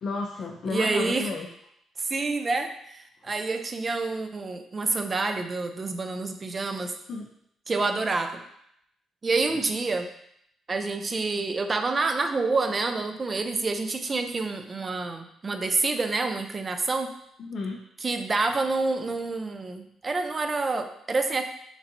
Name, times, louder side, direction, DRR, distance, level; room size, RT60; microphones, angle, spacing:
voice 1, 0.0-1.5 3.2-3.4 7.1-7.3 9.5-9.7 17.4-17.8, left 3 dB, 55° left, 1 dB, 0.5 m, -32 dB
voice 2, 0.7-1.3 2.0-6.9 7.7-8.4 9.2-10.1 10.7-17.1 18.0-21.4, right 3 dB, 30° right, 7 dB, 0.5 m, -28 dB
4.6 x 4.1 x 2.6 m, 0.73 s
cardioid pair, 90°, 0 cm